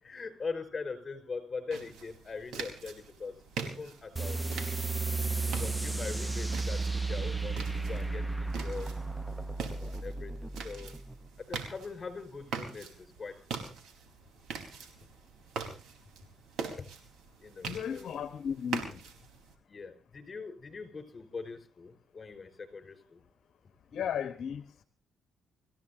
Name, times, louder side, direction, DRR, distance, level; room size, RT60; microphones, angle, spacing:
voice 1, 0.0-3.3 3.6-4.7 5.6-8.9 9.7-10.9 11.5-13.7 16.8-16.9 17.4-18.2 19.7-23.2, left 4 dB, 35° left, 8 dB, 5.3 m, -42 dB
sound 1, 1.7-19.5, right 5 dB, 75° right, 4.5 m, -43 dB
sound 2, 4.2-11.3, right 3 dB, 10° right, 1.0 m, -34 dB
voice 2, 17.6-19.0 23.9-24.8, left 8 dB, 65° left, 10 dB, 1.1 m, -35 dB
27.5 x 15.5 x 2.8 m, 0.38 s
cardioid pair, 90°, 0 cm